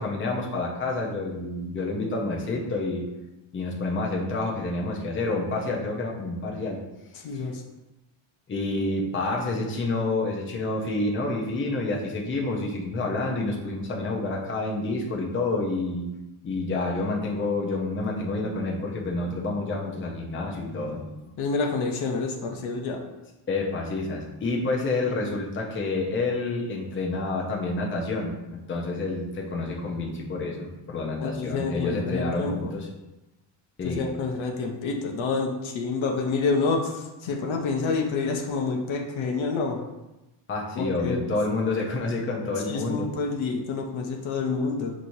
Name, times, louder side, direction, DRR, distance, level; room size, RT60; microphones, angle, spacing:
voice 1, 0.0-3.1 3.5-6.8 7.3-7.4 8.5-16.1 16.4-21.4 23.5-32.9 33.8-34.1 40.5-43.1, left 2 dB, 25° left, -1 dB, 0.7 m, -28 dB
voice 2, 7.1-7.6 21.4-23.0 31.2-32.7 33.8-39.8 40.8-41.2 42.7-44.9, left 4 dB, 70° left, 2 dB, 0.8 m, -28 dB
6.1 x 3.0 x 2.7 m, 1.0 s
cardioid pair, 125°, 50 cm